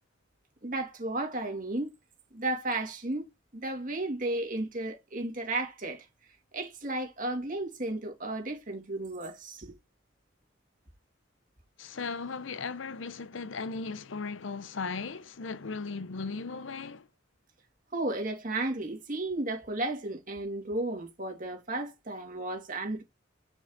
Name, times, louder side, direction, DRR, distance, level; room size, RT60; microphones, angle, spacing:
voice 1, 0.6-1.9 2.3-3.3 3.5-6.1 6.5-9.7 17.9-23.0, right 2 dB, 45° right, 2.8 m, -33 dB
voice 2, 11.8-17.1, left 4 dB, 80° left, 0.7 m, -37 dB
6.1 x 5.3 x 4.0 m
head